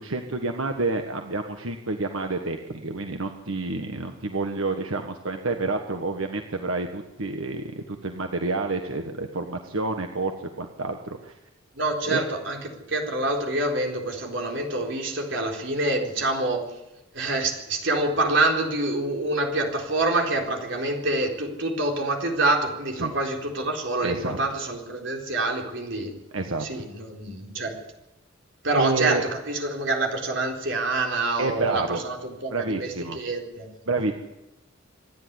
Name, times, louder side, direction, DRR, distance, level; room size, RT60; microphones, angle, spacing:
voice 1, 0.0-11.3 12.1-12.2 23.0-23.1 24.0-24.4 26.3-26.7 28.7-29.2 31.4-32.0 32.5-33.2 33.9-34.1, right 3 dB, 90° right, 5 dB, 1.5 m, -29 dB
voice 2, 11.8-12.6 12.9-16.7 17.1-26.1 26.6-27.8 28.6-29.2 29.5-33.7, right 2 dB, 65° right, 2 dB, 4.1 m, -26 dB
26.5 x 10.5 x 9.6 m, 0.93 s
head